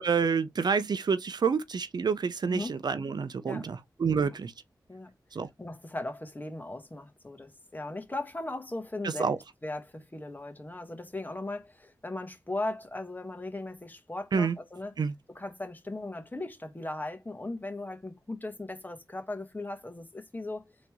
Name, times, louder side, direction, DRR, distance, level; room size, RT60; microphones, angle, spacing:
voice 1, 0.0-4.5 5.3-5.5 9.0-9.4 14.3-14.6 15.0-15.1, right 5 dB, 70° right, 0.5 m, -28 dB
voice 2, 5.6-9.3 9.6-14.9 15.3-20.6, left 2 dB, 25° left, 1.4 m, -38 dB
3.9 x 3.1 x 3.5 m
cardioid pair, 55°, 7 cm